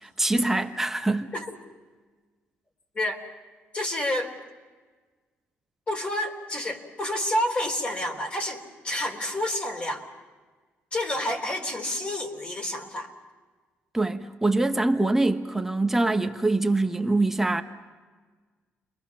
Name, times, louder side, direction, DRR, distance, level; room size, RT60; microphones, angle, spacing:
voice 1, 0.0-1.3 13.9-17.6, right 2 dB, 10° right, 1.2 m, -24 dB
voice 2, 3.7-4.3 5.9-10.1 10.9-13.1, left 1 dB, 30° left, 3.6 m, -29 dB
30.0 x 23.0 x 5.8 m
cardioid pair, 130°, 4 cm